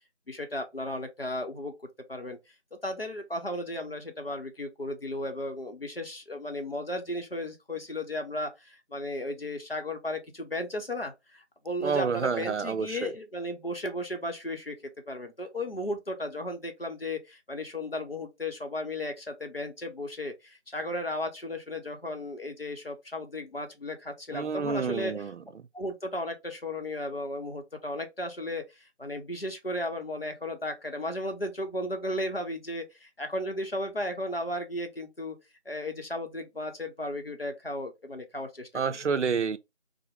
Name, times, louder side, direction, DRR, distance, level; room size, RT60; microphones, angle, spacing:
voice 1, 0.3-1.7 2.1-2.4 2.8-14.7 15.1-25.1 25.7-28.6 29.0-35.4 35.7-39.1, left 1 dB, 55° left, 0.7 m, -35 dB
voice 2, 11.8-13.1 24.3-25.4 38.7-39.6, right 5 dB, 75° right, 0.5 m, -29 dB
3.5 x 2.0 x 3.0 m
figure-of-eight pair, 180°, 35 cm